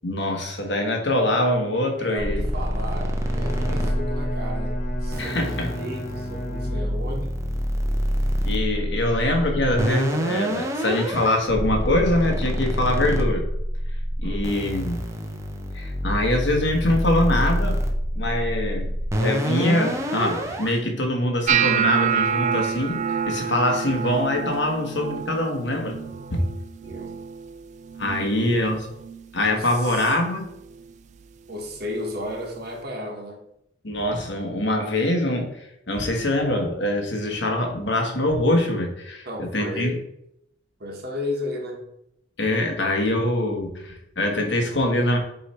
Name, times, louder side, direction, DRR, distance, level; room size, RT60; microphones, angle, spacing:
voice 1, 0.0-2.4 5.2-5.7 8.4-13.4 14.2-15.0 15.7-17.8 18.1-18.9 19.2-26.0 26.3-26.4 28.0-28.8 29.3-30.5 33.8-39.9 42.4-45.2, left 1 dB, 65° left, 2 dB, 1.4 m, -24 dB
voice 2, 2.0-7.4 9.0-9.2 14.2-14.5 26.8-27.2 28.2-28.5 29.5-30.0 31.5-33.4 39.2-40.0 40.8-41.9, left 1 dB, 55° right, 0 dB, 1.4 m, -34 dB
sound 1, 2.2-20.8, equal, 15° right, 0.8 m, -27 dB
Bowed string instrument, 3.1-7.4, right 1 dB, 45° left, 1.0 m, -34 dB
sound 2, 21.5-27.6 27.8-28.4 28.7-29.2 29.9-30.1 31.8-31.9, right 7 dB, 40° right, 0.3 m, -27 dB
8.0 x 3.3 x 4.4 m, 0.79 s
head